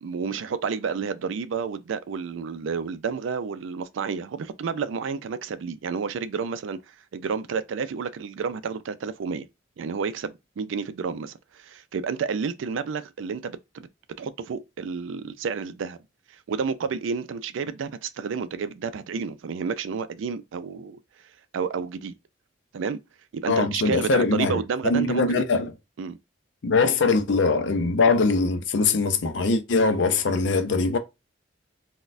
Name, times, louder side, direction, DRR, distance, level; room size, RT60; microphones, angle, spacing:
voice 1, 0.0-6.8 7.1-9.5 9.8-13.6 14.2-16.0 16.5-21.0 21.5-22.1 22.7-23.0 23.3-25.4 26.0-26.2, right 5 dB, 85° right, 0.4 m, -30 dB
voice 2, 23.5-25.7 26.6-31.0, left 3 dB, 70° left, 0.5 m, -22 dB
4.0 x 2.2 x 2.5 m
head